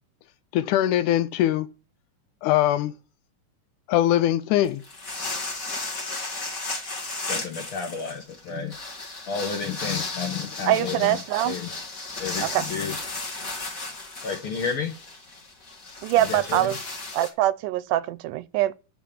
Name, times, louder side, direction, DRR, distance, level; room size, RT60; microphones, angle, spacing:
voice 1, 0.5-1.7 2.4-2.9 3.9-4.8, left 13 dB, 80° left, 2.1 m, -21 dB
sound 1, 4.6-17.3, left 3 dB, 30° left, 2.0 m, -34 dB
voice 2, 7.3-8.7 9.3-11.7 12.2-13.0 14.2-15.0 16.2-16.8, left 6 dB, 60° left, 1.5 m, -31 dB
voice 3, 10.7-11.6 12.4-12.6 16.0-16.8 17.1-18.7, right 14 dB, 85° right, 2.2 m, -23 dB
13.5 x 4.7 x 7.4 m
omnidirectional pair, 3.6 m